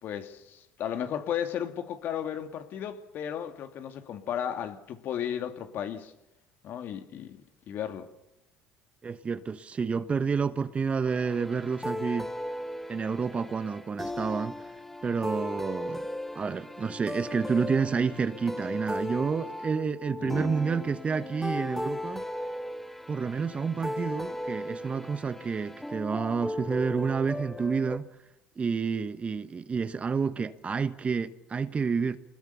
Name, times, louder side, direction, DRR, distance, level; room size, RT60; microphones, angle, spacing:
voice 1, 0.0-6.1 6.6-7.4 7.7-8.1 20.2-20.5, left 9 dB, 60° left, 2.3 m, -34 dB
voice 2, 9.0-12.3 12.9-14.6 15.0-16.1 16.3-22.2 23.1-28.1 28.6-32.2, right 5 dB, 35° right, 1.2 m, -29 dB
sound 1, 11.1-28.0, left 1 dB, 5° left, 1.0 m, -37 dB
26.0 x 21.0 x 7.0 m
supercardioid pair, 75°, 4 cm